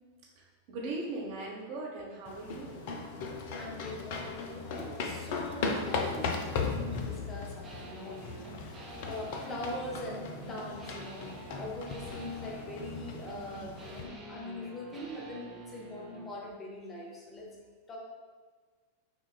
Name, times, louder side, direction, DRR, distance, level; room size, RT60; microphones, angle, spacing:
voice 1, 0.4-2.9 7.2-7.3, right 2 dB, 45° right, -3 dB, 0.9 m, -39 dB
sound 1, 2.3-14.0, left 4 dB, 50° left, 0.4 m, -37 dB
voice 2, 3.6-7.5 7.8-8.7 9.0-11.3 11.6-17.5 17.9-18.0, left 1 dB, 20° left, -3 dB, 0.7 m, -42 dB
sound 2, 7.6-16.3, right 2 dB, 15° right, 0.8 m, -47 dB
5.9 x 2.3 x 2.3 m, 1.5 s
figure-of-eight pair, 90°, 0 cm